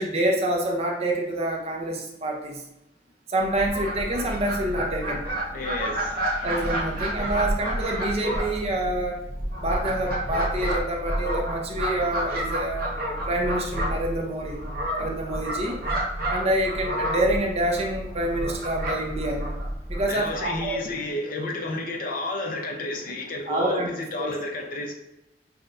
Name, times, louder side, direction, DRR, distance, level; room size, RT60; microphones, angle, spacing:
voice 1, 0.0-2.6 3.3-5.2 6.4-9.2 9.6-14.6 15.0-15.8 16.3-19.4 19.9-20.8 23.5-23.9 24.2-24.3, right 1 dB, 35° right, 1 dB, 0.6 m, -27 dB
Fowl, 3.4-20.7, right 1 dB, 55° right, 0.9 m, -30 dB
voice 2, 5.5-6.2 20.1-23.8 24.1-24.9, left 2 dB, 50° left, 1 dB, 0.6 m, -31 dB
5.7 x 2.2 x 2.5 m, 0.88 s
head